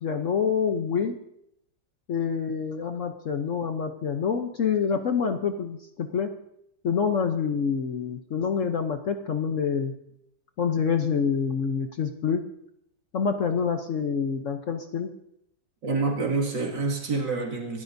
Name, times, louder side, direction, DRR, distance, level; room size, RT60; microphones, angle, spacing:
voice 1, 0.0-1.2 2.1-6.3 6.8-9.9 10.6-12.4 13.1-15.1, left 6 dB, 55° left, 6 dB, 1.0 m, -27 dB
voice 2, 15.8-17.8, right 3 dB, 75° right, -1 dB, 2.9 m, -27 dB
26.0 x 12.5 x 2.7 m, 0.77 s
omnidirectional pair, 2.0 m